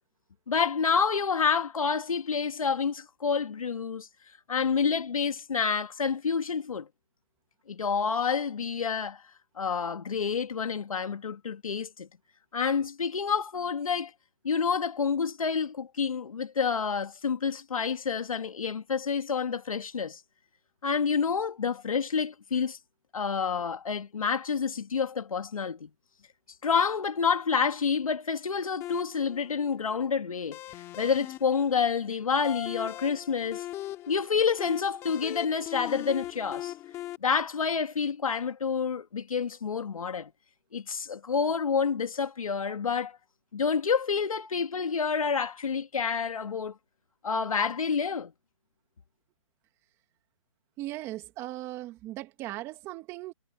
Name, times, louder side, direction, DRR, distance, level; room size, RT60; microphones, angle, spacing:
voice 1, 0.5-4.1 4.5-6.9 7.7-9.2 9.6-12.1 12.5-14.1 14.4-20.2 20.8-22.8 23.1-25.9 26.6-30.6 31.0-33.7 34.1-36.7 37.2-40.3 40.7-43.2 43.5-46.7 47.2-48.3, left 6 dB, 85° left, 2.0 m, -28 dB
sound 1, 28.8-37.2, left 14 dB, 15° left, 4.3 m, -40 dB
voice 2, 50.8-53.3, right 16 dB, 15° right, 2.0 m, -38 dB
hypercardioid pair, 165°, 17 cm